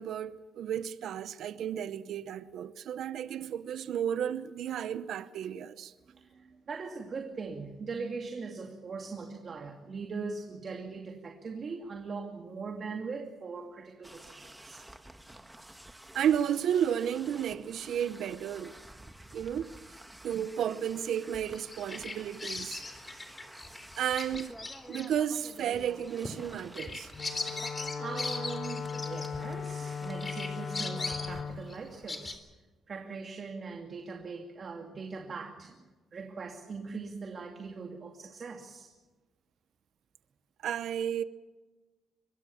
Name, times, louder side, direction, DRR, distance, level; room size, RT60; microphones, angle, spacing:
voice 1, 0.0-5.9 16.1-18.7 19.3-19.7 20.2-22.8 24.0-24.6 24.9-27.1 40.6-41.2, right 9 dB, 75° right, 0.8 m, -32 dB
voice 2, 6.1-14.8 27.5-32.4 32.9-35.8 36.1-38.9, right 4 dB, 45° right, 2.5 m, -41 dB
sound 1, 14.0-31.4, right 1 dB, 10° right, 1.6 m, -51 dB
Bird vocalization bird call bird song, 21.4-29.9 30.2-32.3, left 3 dB, 25° left, 3.8 m, -40 dB
Wind instrument woodwind instrument, 27.1-31.6, left 6 dB, 60° left, 1.8 m, -38 dB
25.0 x 22.0 x 7.2 m
cardioid pair, 90°, 0 cm